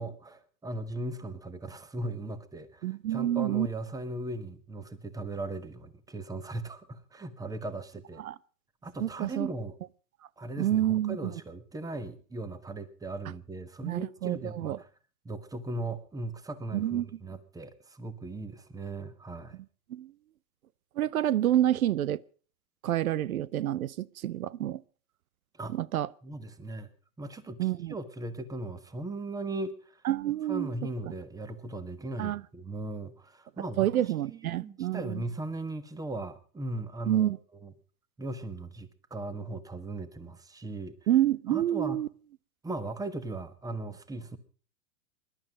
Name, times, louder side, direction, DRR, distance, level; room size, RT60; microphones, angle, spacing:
voice 1, 0.0-8.2 8.8-9.7 10.4-14.9 15.2-19.6 25.6-25.8 26.2-26.9 27.2-30.0 30.5-33.9 34.3-37.3 37.6-37.7 38.2-41.0 41.5-42.0 42.6-44.4, right 2 dB, 10° right, 1.4 m, -38 dB
voice 2, 2.8-3.7 8.2-8.3 9.0-9.5 10.6-11.3 13.8-14.8 16.7-17.1 19.9-20.1 21.0-22.2 22.8-24.8 25.7-26.1 27.6-28.0 30.0-30.7 32.2-32.4 33.8-35.2 37.1-37.4 41.1-42.1, right 12 dB, 85° right, 0.7 m, -28 dB
21.0 x 11.5 x 5.2 m
hypercardioid pair, 120°, 42 cm